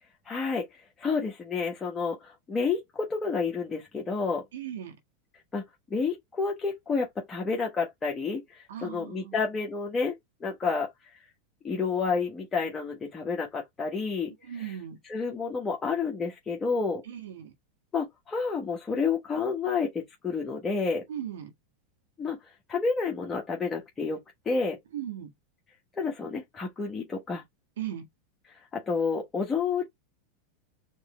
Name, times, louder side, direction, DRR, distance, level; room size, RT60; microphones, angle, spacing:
voice 1, 0.3-0.7 1.0-4.4 5.5-5.6 5.9-10.1 10.4-10.9 11.6-14.7 15.1-17.0 17.9-21.0 22.2-22.4 22.7-24.8 26.0-27.4 28.7-29.9, left 5 dB, 20° left, 1.2 m, -30 dB
voice 2, 4.5-5.0 8.7-9.4 14.4-15.0 17.0-17.5 21.1-21.5 24.9-25.3 27.8-28.1, right 10 dB, 85° right, 1.5 m, -37 dB
4.4 x 3.3 x 3.2 m
supercardioid pair, 125°, 0 cm